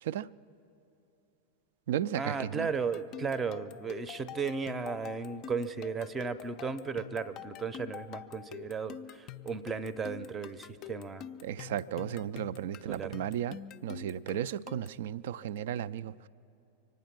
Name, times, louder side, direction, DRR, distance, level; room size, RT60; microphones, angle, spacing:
voice 1, 0.0-0.3 1.9-2.7 11.4-16.3, right 10 dB, 55° right, 0.3 m, -35 dB
voice 2, 2.2-11.2 12.9-13.1, right 5 dB, 20° right, 0.6 m, -35 dB
sound 1, 2.7-15.1, left 10 dB, 35° left, 0.4 m, -46 dB
24.5 x 9.3 x 6.0 m
figure-of-eight pair, 90°, 0 cm